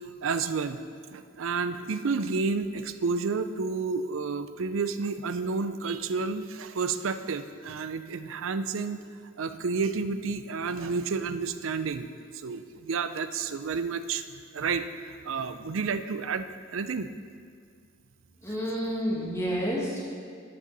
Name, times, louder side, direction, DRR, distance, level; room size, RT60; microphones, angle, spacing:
voice 1, 0.2-0.8 1.1-9.0 9.4-14.2 14.5-16.5 16.7-17.1, right 4 dB, 80° right, 11 dB, 0.5 m, -30 dB
voice 2, 18.4-20.0, equal, 15° left, -5 dB, 1.9 m, -29 dB
12.0 x 7.6 x 4.1 m, 2.1 s
head